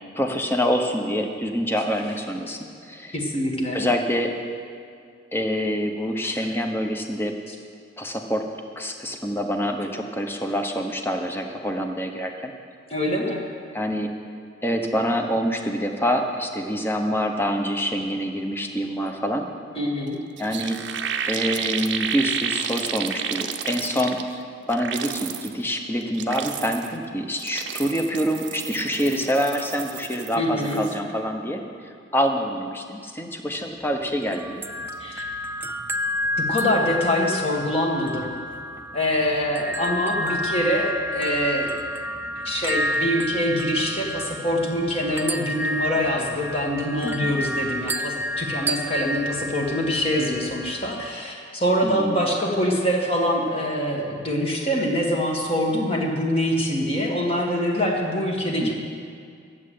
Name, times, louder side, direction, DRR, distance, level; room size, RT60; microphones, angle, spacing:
voice 1, 0.1-3.2 3.7-4.3 5.3-7.4 8.0-8.4 8.8-12.5 13.7-14.1 14.6-19.5 20.4-20.8 21.3-24.2 24.7-34.6 47.0-47.3 51.8-52.3 58.6-58.8, equal, 10° left, 3 dB, 0.9 m, -26 dB
voice 2, 3.1-3.8 12.9-13.4 19.8-20.2 30.4-30.8 35.0-35.3 36.4-38.3 38.9-41.7 42.4-58.8, equal, 30° left, -1 dB, 1.8 m, -24 dB
sound 1, 20.1-20.2 20.4-24.4 24.7-25.5 26.0-27.0 27.3-30.3 30.6-31.0, right 8 dB, 65° right, 0.7 m, -31 dB
sound 2, 34.2-51.1, equal, 10° right, 0.4 m, -30 dB
12.0 x 7.7 x 8.4 m, 2.2 s
head